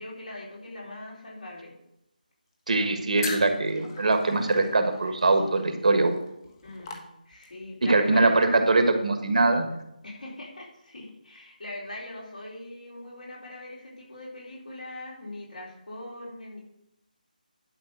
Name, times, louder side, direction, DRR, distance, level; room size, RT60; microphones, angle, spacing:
voice 1, 0.0-1.7 6.6-8.8 10.0-16.6, left 1 dB, 65° left, -3 dB, 4.0 m, -41 dB
voice 2, 2.7-6.1 7.8-9.8, right 2 dB, 55° right, 6 dB, 1.4 m, -22 dB
sound 1, 3.2-7.7, left 4 dB, 30° left, 1.3 m, -40 dB
11.0 x 5.4 x 6.1 m, 0.82 s
figure-of-eight pair, 155°, 5 cm